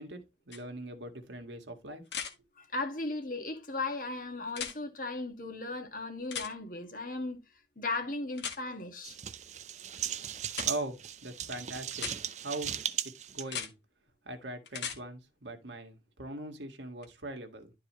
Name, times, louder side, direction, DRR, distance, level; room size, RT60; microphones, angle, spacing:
voice 1, 0.0-2.0 10.6-12.1 12.4-13.7 14.3-17.7, right 2 dB, 80° right, 1.8 m, -41 dB
sound 1, 0.5-0.6 2.1-2.3 4.5-4.8 6.3-6.5 8.4-8.6 10.5-10.7 11.9-12.2 13.4-13.7 14.7-15.0 17.0-17.1, left 7 dB, 75° left, 1.6 m, -37 dB
voice 2, 2.6-7.4 7.8-9.2, left 3 dB, 50° left, 1.8 m, -36 dB
sound 2, 9.0-13.4, right 10 dB, 40° right, 0.6 m, -37 dB
12.0 x 4.7 x 3.1 m
head